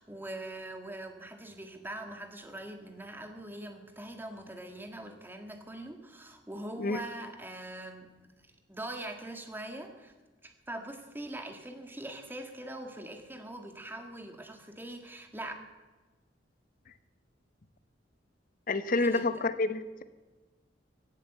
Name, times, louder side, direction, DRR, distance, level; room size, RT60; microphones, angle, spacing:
voice 1, 0.0-8.1 8.7-10.1 10.4-15.5 19.0-19.3, right 1 dB, 10° right, 5 dB, 1.7 m, -42 dB
voice 2, 18.7-20.0, left 2 dB, 50° left, 12 dB, 0.9 m, -28 dB
16.5 x 9.0 x 7.9 m, 1.2 s
head